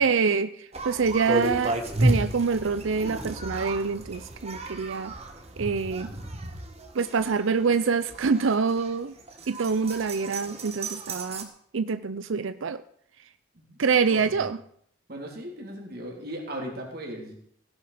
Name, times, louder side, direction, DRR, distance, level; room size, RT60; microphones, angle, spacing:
voice 1, 0.0-5.1 5.6-6.1 6.9-9.1 9.5-11.5 11.7-12.8 13.8-14.6, right 5 dB, 70° right, 13 dB, 0.5 m, -26 dB
sound 1, 0.7-11.4, right 1 dB, 30° right, 1.7 m, -32 dB
voice 2, 14.1-14.5 15.1-17.3, equal, 50° right, 0 dB, 3.5 m, -37 dB
16.0 x 11.5 x 5.0 m, 0.65 s
head